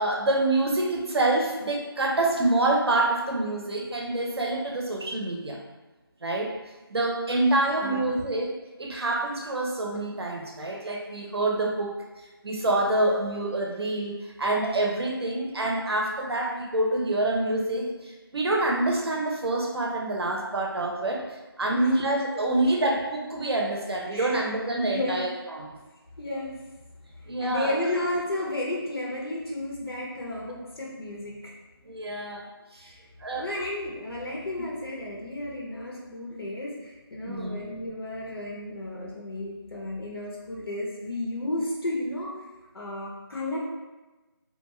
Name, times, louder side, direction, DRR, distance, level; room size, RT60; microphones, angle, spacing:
voice 1, 0.0-5.6 6.2-6.5 6.9-8.5 8.8-12.0 12.4-21.2 21.6-25.7 27.3-27.8 31.8-32.4 32.7-32.9 33.2-33.5 37.2-37.6, right 2 dB, 90° right, 0 dB, 0.7 m, -26 dB
voice 2, 7.6-8.2 20.5-20.6 21.7-22.4 24.1-24.3 24.8-25.2 26.2-26.6 27.2-31.4 32.8-33.0 33.4-42.3 42.7-43.6, left 1 dB, 75° left, -4 dB, 0.7 m, -33 dB
2.5 x 2.3 x 3.0 m, 1.1 s
figure-of-eight pair, 175°, 13 cm